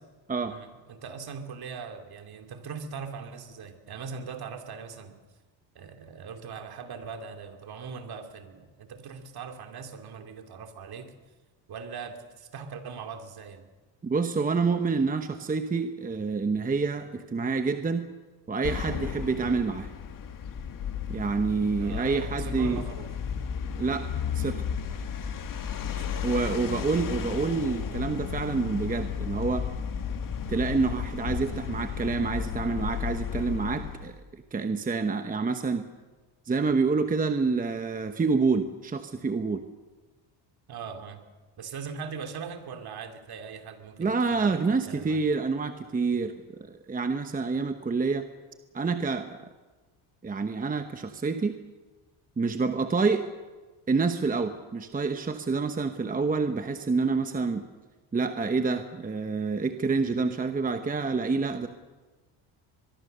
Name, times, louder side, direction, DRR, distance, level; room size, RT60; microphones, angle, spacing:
voice 1, 0.5-5.2 5.7-11.1 11.7-13.7 21.8-23.1 25.9-26.4 40.7-41.2 41.6-44.6 44.8-45.2, right 6 dB, 50° right, 6 dB, 2.9 m, -40 dB
voice 2, 14.0-18.1 18.5-19.9 21.1-22.8 23.8-24.1 24.3-24.6 26.2-29.7 30.5-35.9 36.5-39.6 44.0-46.3 46.7-48.3 48.7-49.4 50.2-51.6 52.4-53.3 53.9-57.6 58.1-61.7, right 4 dB, 15° right, 7 dB, 1.0 m, -27 dB
sound 1, 18.6-34.1, left 7 dB, 40° left, 2.0 m, -33 dB
23.5 x 21.5 x 6.8 m, 1.3 s
cardioid pair, 135°, 48 cm